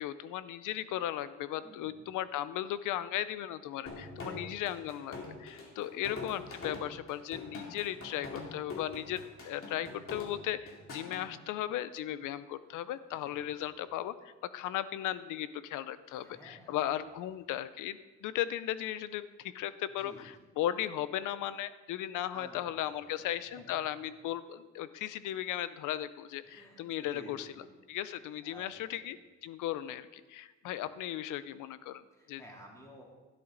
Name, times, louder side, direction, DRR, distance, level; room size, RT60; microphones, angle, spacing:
voice 1, 0.0-27.5 27.9-29.2 29.4-32.4, left 12 dB, 90° left, 15 dB, 0.6 m, -36 dB
voice 2, 1.5-2.0 4.0-4.7 5.7-6.0 7.7-8.0 13.2-13.8 16.1-17.1 20.0-20.5 22.3-23.4 26.4-27.7 28.4-29.1 30.7-30.9 32.1-33.0, equal, 10° left, -3 dB, 3.6 m, -54 dB
sound 1, 3.9-11.2, left 3 dB, 45° left, 2.4 m, -44 dB
13.0 x 10.5 x 3.9 m, 1.3 s
cardioid pair, 90°, 30 cm